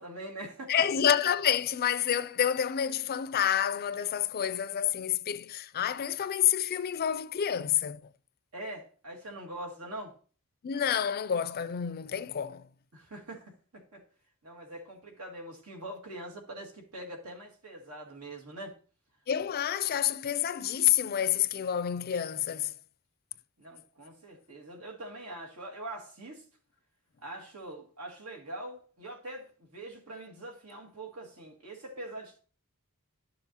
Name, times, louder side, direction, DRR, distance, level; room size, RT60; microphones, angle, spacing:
voice 1, 0.0-0.7 8.5-10.1 12.9-14.0 14.4-18.8 23.6-26.5 27.2-32.4, right 1 dB, 85° right, 2.0 m, -43 dB
voice 2, 0.7-8.0 10.6-12.7 19.3-22.7, left 9 dB, 45° left, 0.4 m, -28 dB
11.5 x 6.8 x 2.8 m
head